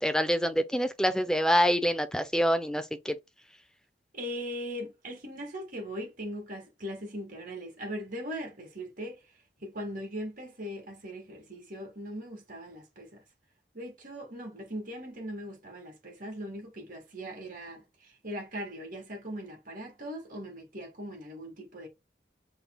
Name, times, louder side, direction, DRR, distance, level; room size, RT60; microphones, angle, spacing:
voice 1, 0.0-3.2, equal, 5° left, 0.5 m, -26 dB
voice 2, 4.1-9.2 9.6-13.2 13.7-21.9, equal, 50° right, 2.2 m, -40 dB
5.8 x 3.5 x 2.3 m
head